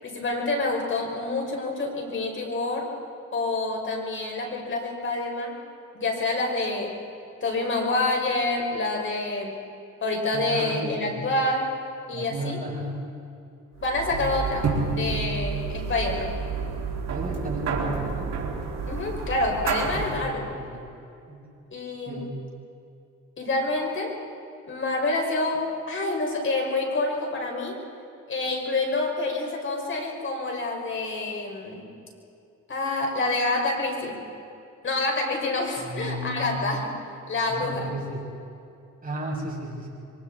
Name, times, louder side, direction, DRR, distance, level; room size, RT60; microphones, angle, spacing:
voice 1, 0.0-2.9 3.3-5.5 5.9-6.9 7.4-9.6 10.0-11.7 12.1-12.6 13.8-16.3 18.9-20.5 21.7-22.2 23.4-24.2 24.7-27.8 28.3-31.9 32.7-34.2 34.8-36.9 37.3-37.9, left 2 dB, 40° left, 0 dB, 5.6 m, -27 dB
voice 2, 10.3-11.3 12.1-13.0 14.1-14.3 17.1-18.4 19.8-20.9 21.3-21.4 22.1-22.3 35.8-36.7 37.5-38.2 39.0-39.9, right 1 dB, 30° right, -2 dB, 6.9 m, -34 dB
sound 1, 13.8-20.3, right 4 dB, 60° right, 4.3 m, -30 dB
27.0 x 23.5 x 4.2 m, 2.6 s
cardioid pair, 90°, 30 cm